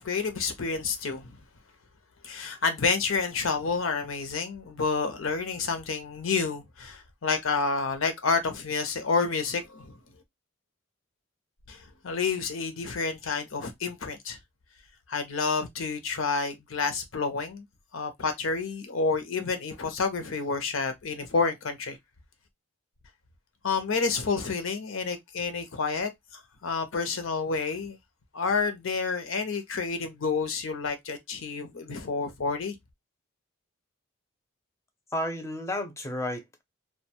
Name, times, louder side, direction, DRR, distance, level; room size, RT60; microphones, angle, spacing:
voice 1, 0.0-1.4 2.2-10.0 11.7-14.4 15.1-17.6 17.9-22.0 23.6-28.0 28.3-32.8, left 4 dB, 70° left, 0.7 m, -29 dB
voice 2, 35.1-36.6, left 1 dB, 15° left, 0.5 m, -32 dB
2.4 x 2.2 x 2.9 m
head